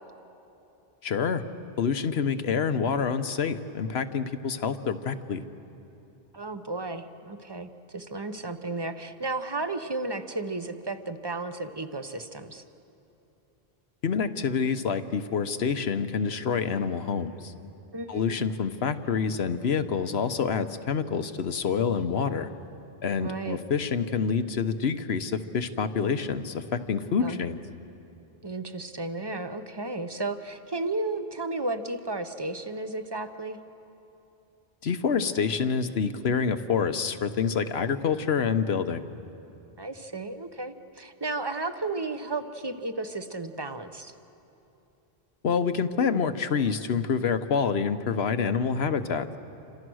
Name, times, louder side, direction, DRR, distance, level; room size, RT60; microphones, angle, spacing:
voice 1, 1.0-1.4 1.8-5.4 14.0-17.5 18.1-22.5 23.0-27.6 34.8-39.0 45.4-49.4, left 6 dB, 80° left, 10 dB, 1.2 m, -27 dB
voice 2, 6.3-12.6 17.9-18.3 23.2-23.6 27.2-27.4 28.4-33.6 39.8-44.1, right 2 dB, 25° right, 9 dB, 0.9 m, -33 dB
28.5 x 26.0 x 6.3 m, 2.9 s
omnidirectional pair, 1.1 m